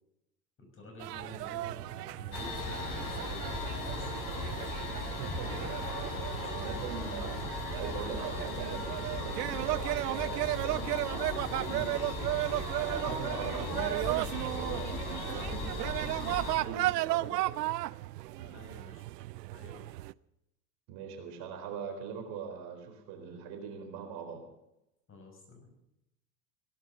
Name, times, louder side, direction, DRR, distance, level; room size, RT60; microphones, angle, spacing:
voice 1, 0.6-4.7 5.4-6.8 13.3-13.5 16.2-17.0 18.4-19.1 19.5-19.8 25.1-25.8, left 2 dB, 25° left, 3 dB, 6.5 m, -50 dB
sound 1, 1.0-20.1, right 17 dB, 80° right, 0.6 m, -35 dB
sound 2, 2.3-16.6, left 2 dB, 40° left, 6.5 m, -37 dB
voice 2, 5.0-12.2 12.8-17.6 20.9-24.4, right 6 dB, 55° right, 4 dB, 4.3 m, -42 dB
18.0 x 11.5 x 6.7 m, 0.85 s
hypercardioid pair, 95°, 48 cm